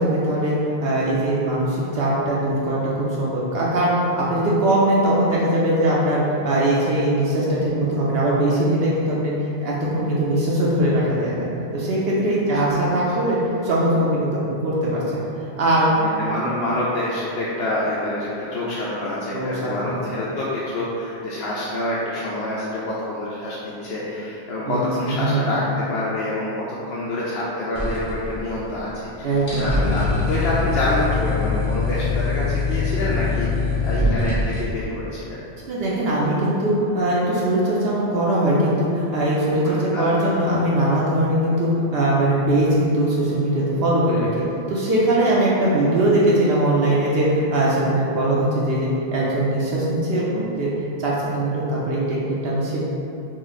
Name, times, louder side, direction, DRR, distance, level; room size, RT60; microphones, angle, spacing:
voice 1, 0.0-9.3 9.6-11.5 11.7-15.2 15.6-15.9 19.3-19.9 24.7-24.8 25.0-25.5 29.2-29.9 35.7-44.3 44.7-50.7 51.0-52.8, right 1 dB, 65° right, -6 dB, 0.8 m, -21 dB
voice 2, 11.8-12.6 15.9-35.4 39.6-40.5, left 1 dB, 70° left, -8 dB, 0.8 m, -27 dB
sound 1, 27.7-28.8 29.0-29.1 29.4-34.6, left 3 dB, 35° left, 0.9 m, -23 dB
3.1 x 2.6 x 3.8 m, 2.8 s
omnidirectional pair, 1.1 m